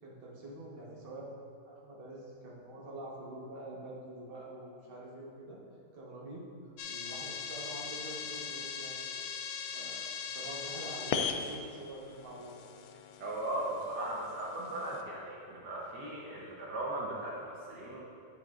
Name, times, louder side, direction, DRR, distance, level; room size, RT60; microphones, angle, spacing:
voice 1, 0.0-1.4 1.6-5.6 5.9-6.5 6.9-9.2 9.7-12.5, right 1 dB, 35° right, -5 dB, 1.3 m, -46 dB
sound 1, 6.8-15.0, left 6 dB, 70° left, 1.0 m, -39 dB
voice 2, 13.2-18.0, right 1 dB, 75° right, -4 dB, 1.6 m, -38 dB
8.8 x 7.5 x 2.5 m, 2.5 s
omnidirectional pair, 1.8 m